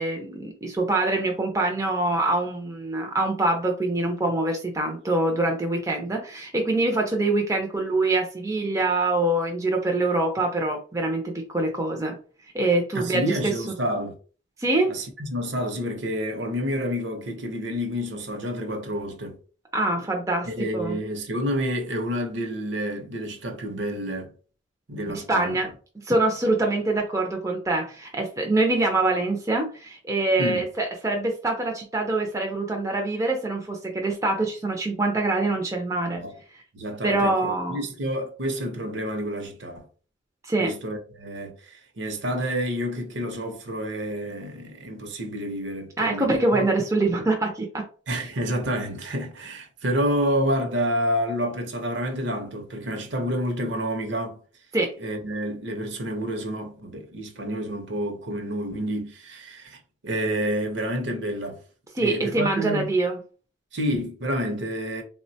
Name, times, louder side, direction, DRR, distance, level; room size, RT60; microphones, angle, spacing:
voice 1, 0.0-12.2 12.5-13.5 14.6-15.0 19.7-20.5 20.7-21.0 25.1-25.7 26.0-36.2 37.0-37.8 40.4-40.7 46.0-47.8 54.7-54.9 62.0-63.2, right 2 dB, 15° right, 0.4 m, -24 dB
voice 2, 12.9-14.1 14.9-19.4 20.5-24.3 24.9-25.5 30.4-30.7 36.2-36.4 36.7-39.8 40.6-46.6 48.1-54.4 55.0-61.6 62.0-62.9 63.7-65.0, equal, 65° right, 0.7 m, -29 dB
3.6 x 2.1 x 2.6 m
head